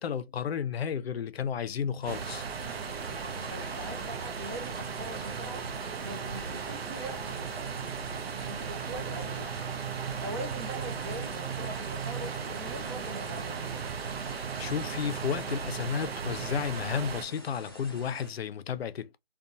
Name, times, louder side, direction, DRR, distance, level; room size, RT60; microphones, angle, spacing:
voice 1, 0.0-2.4 14.6-19.2, left 7 dB, 85° left, 0.5 m, -32 dB
sound 1, 2.0-18.3, equal, 25° left, 0.4 m, -47 dB
sound 2, 2.1-17.2, right 6 dB, 85° right, 0.5 m, -36 dB
voice 2, 3.5-5.7 6.0-7.8 8.4-9.5 10.2-13.9, right 1 dB, 30° right, 0.5 m, -42 dB
2.7 x 2.2 x 2.5 m
hypercardioid pair, 165°, 30 cm